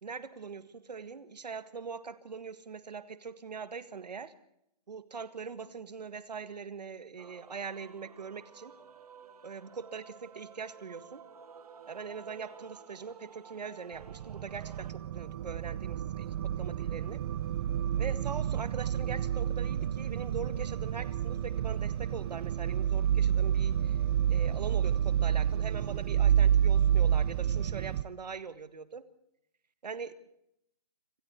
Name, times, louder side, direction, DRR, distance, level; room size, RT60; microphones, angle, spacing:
voice 1, 0.0-4.3 4.9-8.7 9.4-11.3 11.9-17.2 18.0-24.0 24.3-29.0 29.8-30.1, right 5 dB, 90° right, 14 dB, 1.8 m, -42 dB
Male singing / Female singing / Musical instrument, 7.2-14.9, right 6 dB, 65° right, 2.3 m, -53 dB
sound 1, 14.0-28.0, right 9 dB, 40° right, 0.8 m, -29 dB
27.0 x 14.0 x 8.4 m, 0.78 s
hypercardioid pair, 155°, 20 cm